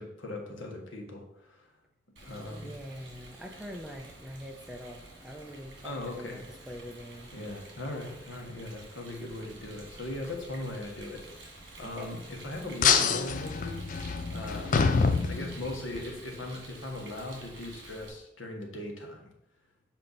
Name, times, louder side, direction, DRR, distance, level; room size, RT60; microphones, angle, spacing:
voice 1, 0.0-1.7 2.2-2.7 5.8-6.4 7.3-13.8 14.3-14.9 15.3-19.3, left 1 dB, 85° left, 2 dB, 1.3 m, -39 dB
Rain, 2.2-18.1, right 2 dB, 60° right, 1.8 m, -49 dB
voice 2, 2.5-7.3 11.8-12.2, equal, 5° right, 1 dB, 0.6 m, -44 dB
sound 1, 12.8-16.0, left 5 dB, 40° left, 0.4 m, -26 dB
7.1 x 4.4 x 4.0 m, 0.80 s
head